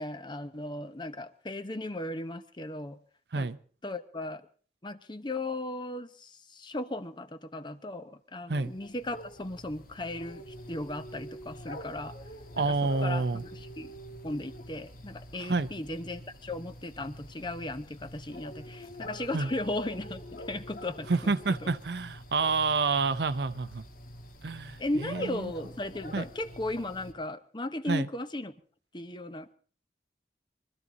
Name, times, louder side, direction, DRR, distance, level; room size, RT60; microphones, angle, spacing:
voice 1, 0.0-3.0 3.3-3.5 3.8-4.4 4.8-12.1 12.6-13.9 14.2-21.3 21.6-21.7 24.8-28.5 28.9-29.5, left 1 dB, 25° left, 0.9 m, -36 dB
sound 1, 8.6-27.1, equal, 55° left, 1.5 m, -46 dB
voice 2, 12.5-13.4 15.5-15.7 19.3-19.5 21.1-23.8 24.4-25.5 26.1-26.2 27.9-28.1, right 3 dB, 70° right, 0.7 m, -28 dB
23.0 x 13.5 x 4.1 m
head